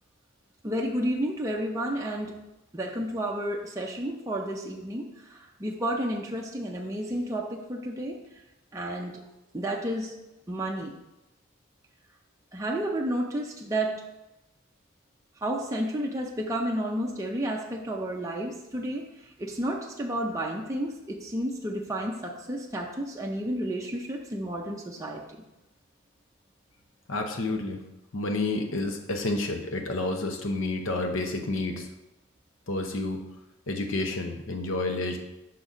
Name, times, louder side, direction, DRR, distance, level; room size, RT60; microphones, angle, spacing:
voice 1, 0.6-2.3 2.7-5.1 5.3-8.2 8.7-9.2 9.5-10.1 10.5-10.9 12.5-14.0 15.4-19.0 19.4-25.2, right 1 dB, 15° right, -1 dB, 0.5 m, -31 dB
voice 2, 27.1-27.8 28.1-31.9 32.7-33.2 33.7-35.2, left 2 dB, 65° left, 4 dB, 0.8 m, -29 dB
5.8 x 4.1 x 5.0 m, 0.95 s
head